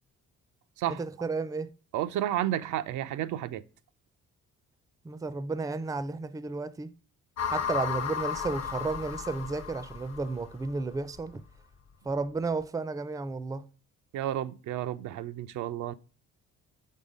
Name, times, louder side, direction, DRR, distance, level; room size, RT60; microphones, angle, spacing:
voice 1, 0.9-1.7 5.0-6.9 7.5-11.4 12.1-13.7, right 3 dB, 10° right, 0.4 m, -33 dB
voice 2, 1.9-3.6 14.1-15.9, right 12 dB, 75° right, 0.5 m, -31 dB
sound 1, 7.4-10.7, left 7 dB, 60° left, 1.0 m, -34 dB
5.6 x 3.9 x 5.1 m
cardioid pair, 90°, 30 cm